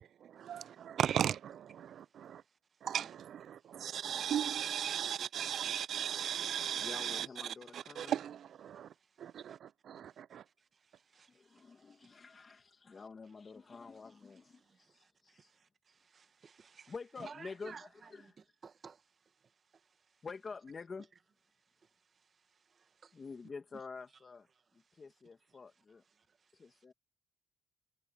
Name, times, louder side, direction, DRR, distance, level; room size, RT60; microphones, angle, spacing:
voice 1, 0.0-2.4 2.8-7.3 7.7-8.9 9.2-10.4, right 9 dB, 65° right, 0.4 m, -37 dB
voice 2, 1.8-3.1 3.5-4.2 8.6-9.6 10.1-12.5 12.9-13.1 13.6-20.2 21.5-23.8 24.5-25.1 25.5-25.6 26.0-26.9, right 5 dB, 45° right, 1.6 m, -59 dB
voice 3, 6.8-8.2 11.1-15.5 16.9-17.8 18.1-18.4 20.2-21.1 23.1-24.5 24.7-26.0 26.5-26.9, left 4 dB, 35° left, 2.1 m, -48 dB
cardioid pair, 90°, 0 cm